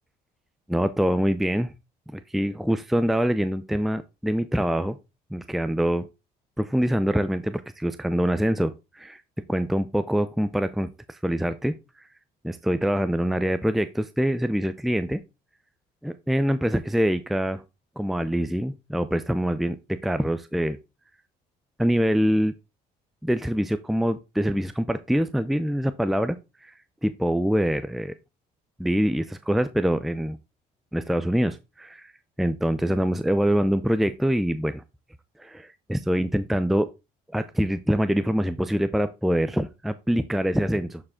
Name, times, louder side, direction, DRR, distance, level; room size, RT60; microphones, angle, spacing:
voice 1, 0.7-1.7 2.1-5.0 5.3-6.1 6.6-9.2 9.5-11.8 12.4-15.2 16.0-17.6 18.0-20.8 21.8-22.5 23.2-26.7 27.0-28.1 28.8-30.4 30.9-32.1 32.4-34.8 35.4-36.9 37.3-41.0, equal, ahead, 12 dB, 0.5 m, -25 dB
11.5 x 5.0 x 3.6 m, 0.26 s
cardioid pair, 110°, 17 cm